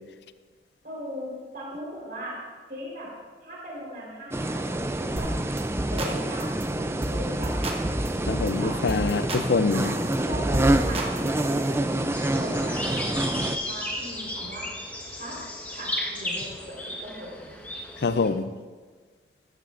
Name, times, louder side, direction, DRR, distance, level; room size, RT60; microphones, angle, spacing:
voice 1, 0.8-2.4 2.7-3.1 3.4-5.3 5.8-7.5 8.6-8.7 9.7-14.7 15.1-15.4 15.7-16.7 17.0-17.6, equal, 55° right, -4 dB, 3.9 m, -38 dB
sound 1, 4.3-13.6, right 1 dB, 15° right, 0.4 m, -27 dB
sound 2, 5.2-5.3 5.6-6.1 6.4-6.6 7.0-7.2 7.4-8.5 8.9-9.4 9.7-11.7, right 1 dB, 35° right, 1.2 m, -30 dB
voice 2, 8.3-9.9 18.0-18.5, left 4 dB, 75° left, 12 dB, 0.5 m, -25 dB
sound 3, 12.1-18.3, left 1 dB, 10° left, 1.1 m, -34 dB
14.5 x 13.5 x 2.5 m, 1.5 s
head